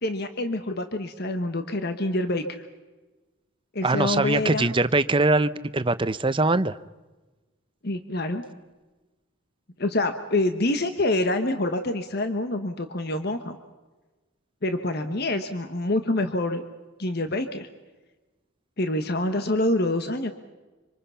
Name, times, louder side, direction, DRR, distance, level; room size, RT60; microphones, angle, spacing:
voice 1, 0.0-2.6 3.7-4.7 7.8-8.4 9.8-13.6 14.6-16.6 17.0-17.7 18.8-20.3, left 2 dB, 50° left, 8 dB, 1.3 m, -26 dB
voice 2, 3.8-6.8, right 2 dB, 25° right, 14 dB, 0.7 m, -22 dB
26.0 x 26.0 x 5.7 m, 1.2 s
head